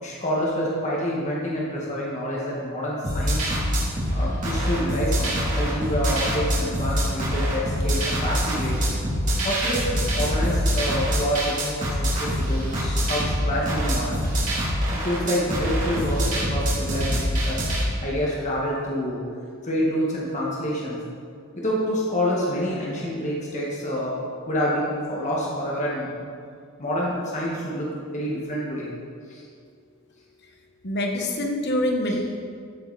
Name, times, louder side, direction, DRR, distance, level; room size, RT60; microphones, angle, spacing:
voice 1, 0.0-3.5 4.1-8.8 9.4-14.2 14.9-17.6 18.0-19.2 19.6-21.0 21.5-24.1 24.5-26.1 26.8-28.9 29.3-29.4 32.1-32.2, equal, 35° left, -5 dB, 1.7 m, -27 dB
sound 1, 3.0-17.8, equal, 35° right, 3.2 m, -25 dB
voice 2, 30.8-32.2, left 1 dB, 50° left, 2 dB, 1.4 m, -25 dB
14.0 x 8.1 x 4.2 m, 2.3 s
head